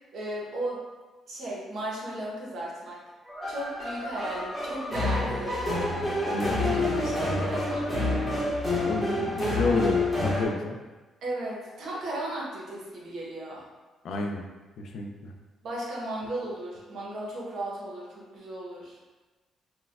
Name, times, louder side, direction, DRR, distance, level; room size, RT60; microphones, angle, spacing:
voice 1, 0.1-0.8 1.3-3.0 3.5-6.1 7.0-8.0 11.2-13.6 15.6-19.0, right 1 dB, 70° right, -4 dB, 0.9 m, -35 dB
sound 1, 3.3-10.4, left 2 dB, 5° left, 1.1 m, -28 dB
voice 2, 6.3-7.5 8.8-10.8 14.0-14.4 14.8-15.3, left 3 dB, 70° left, 2 dB, 0.4 m, -31 dB
4.0 x 2.2 x 2.4 m, 1.2 s
cardioid pair, 90°, 0 cm